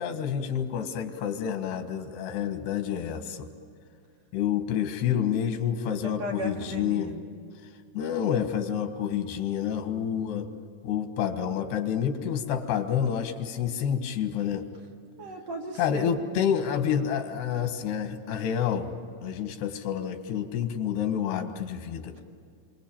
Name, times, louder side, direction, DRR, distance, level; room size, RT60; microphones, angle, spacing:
voice 1, 0.0-3.5 4.3-7.1 7.9-10.5 10.8-14.7 15.8-18.9 19.2-22.2, left 8 dB, 85° left, 7 dB, 3.5 m, -28 dB
voice 2, 6.0-7.2 15.2-16.1, right 1 dB, 50° right, 0 dB, 2.8 m, -36 dB
28.5 x 23.5 x 8.8 m, 2.2 s
omnidirectional pair, 4.6 m